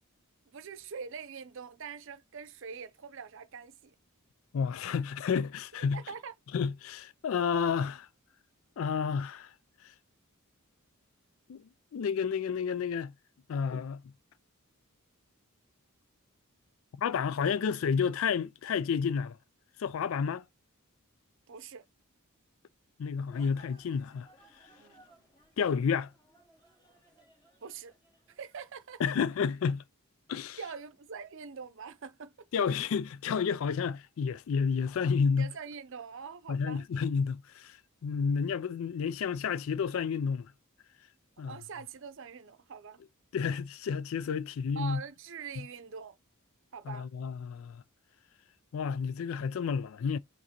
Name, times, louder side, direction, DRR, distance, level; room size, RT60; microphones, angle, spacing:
voice 1, 0.5-3.9 5.8-6.3 21.5-21.8 24.8-25.0 27.6-27.9 28.3-29.0 30.6-32.5 35.4-36.8 41.4-43.0 44.8-46.2 46.7-47.1, right 6 dB, 60° right, 0.6 m, -44 dB
voice 2, 4.5-6.0 6.5-8.1 8.8-9.5 11.5-13.1 13.5-14.0 17.0-19.4 19.8-20.4 23.0-24.3 25.6-26.1 29.0-29.8 30.3-30.6 32.5-35.5 36.5-40.5 41.4-41.6 43.3-45.0 46.9-47.8 48.7-50.2, left 6 dB, 65° left, 0.3 m, -30 dB
sound 1, 23.3-28.8, right 1 dB, 20° left, 1.6 m, -62 dB
5.0 x 2.7 x 2.9 m
head